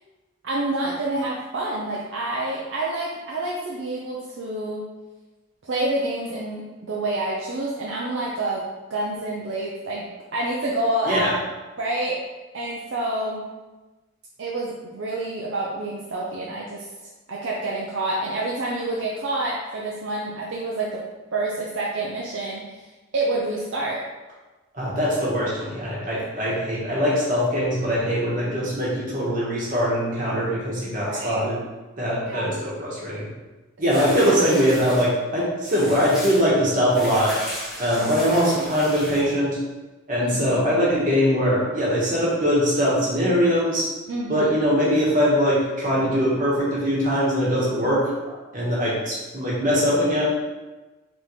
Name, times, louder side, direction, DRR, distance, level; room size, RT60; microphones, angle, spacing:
voice 1, 0.4-4.8 5.6-11.3 11.8-12.2 12.5-13.4 14.4-16.9 17.3-21.0 21.3-22.9 23.1-24.0 31.0-31.4 32.3-32.5 33.9-34.1 40.2-40.9 44.1-44.5, right 2 dB, 60° right, -4 dB, 0.5 m, -28 dB
voice 2, 24.7-31.6 32.0-33.3 33.8-37.3 37.8-39.6 40.1-43.8 44.3-48.1 48.5-50.3, equal, 40° right, -6 dB, 1.3 m, -22 dB
sound 1, 33.9-35.1 35.6-36.4 36.9-39.2, equal, ahead, 0.9 m, -34 dB
4.0 x 3.5 x 3.1 m, 1.2 s
head